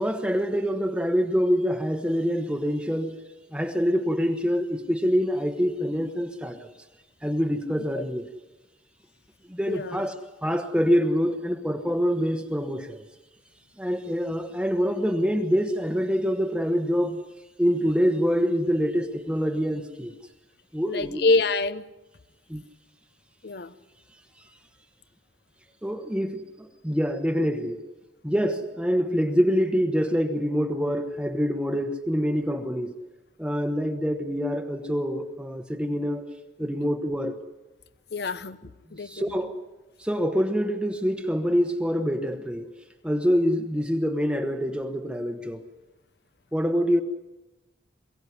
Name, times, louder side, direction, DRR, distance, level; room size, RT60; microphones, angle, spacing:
voice 1, 0.0-3.2 3.5-6.7 7.2-8.3 9.5-13.0 13.8-17.2 17.6-20.1 20.7-21.2 22.5-22.6 25.8-27.8 28.2-32.9 33.4-36.2 36.6-37.4 39.0-39.6 40.0-42.7 43.0-45.6 46.5-47.0, equal, 5° right, 1.0 m, -25 dB
voice 2, 9.7-10.0 20.9-21.8 23.4-23.7 38.1-39.3, left 3 dB, 60° left, 0.8 m, -26 dB
22.5 x 16.5 x 9.7 m
head